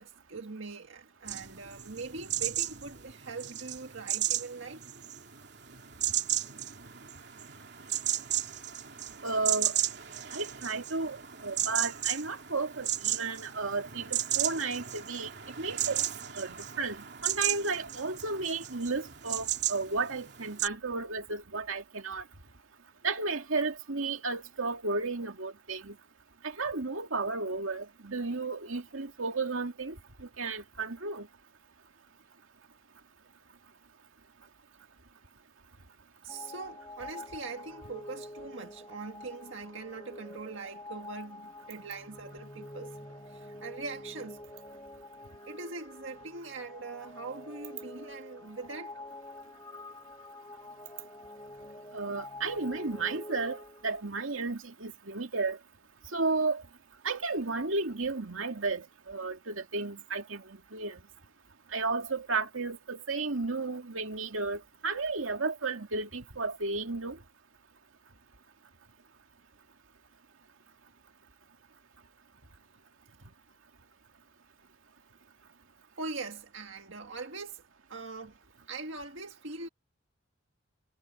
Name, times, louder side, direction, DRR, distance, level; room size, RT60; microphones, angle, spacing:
voice 1, 0.0-4.8 36.2-43.0 43.3-44.4 45.5-49.0 73.1-73.3 76.0-78.4 78.7-79.7, right 3 dB, 70° right, 1.7 m, -42 dB
sound 1, 1.3-20.7, right 12 dB, 55° right, 3.2 m, -34 dB
voice 2, 9.2-9.7 10.3-15.3 15.6-16.0 16.4-17.0 17.2-22.2 23.0-25.9 26.4-29.9 30.2-31.3 51.9-55.6 56.1-56.6 57.0-60.4 60.7-61.0 61.7-67.2, right 3 dB, 85° right, 2.4 m, -33 dB
sound 2, 36.3-54.1, left 1 dB, 20° left, 5.6 m, -47 dB
head